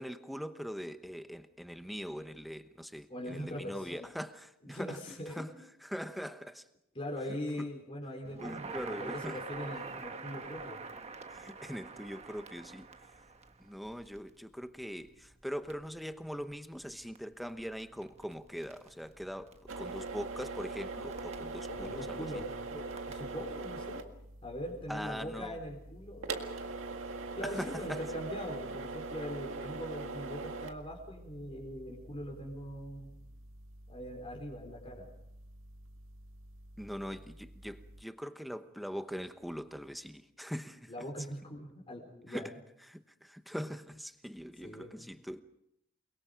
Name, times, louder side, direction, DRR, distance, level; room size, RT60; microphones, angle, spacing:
voice 1, 0.0-5.0 5.4-5.5 5.9-6.6 7.6-7.7 8.4-9.4 11.3-12.9 13.6-22.4 24.9-25.6 27.4-28.0 36.8-40.9 42.3-42.5 42.9-45.4, equal, ahead, 1.0 m, -42 dB
voice 2, 3.1-4.1 4.6-5.4 5.9-6.1 6.9-10.8 21.7-24.0 24.4-26.4 27.4-33.2 33.9-35.1 40.9-42.5 44.6-44.9, equal, 30° left, 4.3 m, -41 dB
Crackle, 8.2-23.7, right 4 dB, 35° right, 1.4 m, -48 dB
sound 1, 19.7-38.0, right 3 dB, 85° right, 1.9 m, -43 dB
29.0 x 22.0 x 5.1 m
head